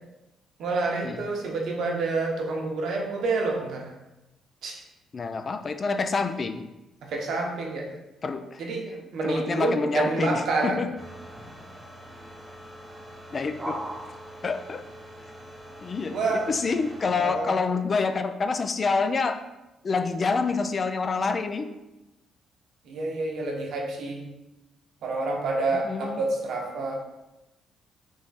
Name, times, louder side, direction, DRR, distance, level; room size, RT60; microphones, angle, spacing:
voice 1, 0.6-3.9 4.6-4.8 7.0-7.9 8.6-8.8 9.1-10.8 16.1-16.5 17.2-17.6 22.8-24.2 25.0-27.0, right 3 dB, 75° right, 0 dB, 0.9 m, -28 dB
voice 2, 5.1-6.6 8.2-10.9 13.3-13.8 14.4-14.8 15.8-19.4 19.8-21.7 25.8-26.2, left 4 dB, 40° left, 8 dB, 0.3 m, -27 dB
sound 1, 11.0-17.3, right 1 dB, 10° right, 0.7 m, -41 dB
3.6 x 3.2 x 4.0 m, 0.98 s
cardioid pair, 90°, 0 cm